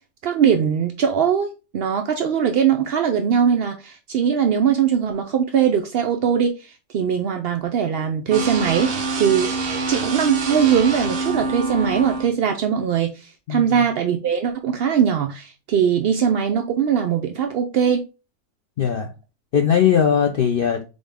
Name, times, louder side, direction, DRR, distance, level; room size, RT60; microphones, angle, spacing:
voice 1, 0.2-9.5 9.9-18.0, right 8 dB, 80° right, 0.5 m, -21 dB
sound 1, 8.3-12.3, right 3 dB, 50° right, 1.0 m, -25 dB
voice 2, 18.8-19.1 19.5-20.9, left 8 dB, 70° left, 0.5 m, -19 dB
3.9 x 3.8 x 3.4 m
omnidirectional pair, 1.5 m